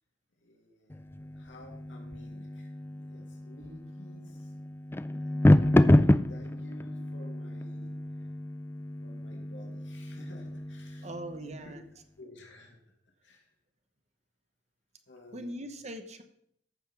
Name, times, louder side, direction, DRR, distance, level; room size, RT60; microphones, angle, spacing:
voice 1, 0.4-8.3 9.0-11.7 12.1-12.8 13.2-13.5 15.1-15.7, equal, 85° left, 0 dB, 2.6 m, -53 dB
sound 1, 0.9-11.7, left 1 dB, 15° left, 0.4 m, -28 dB
voice 2, 11.0-11.8 15.3-16.2, right 1 dB, 40° right, 7 dB, 1.2 m, -41 dB
14.5 x 5.4 x 6.2 m, 0.71 s
head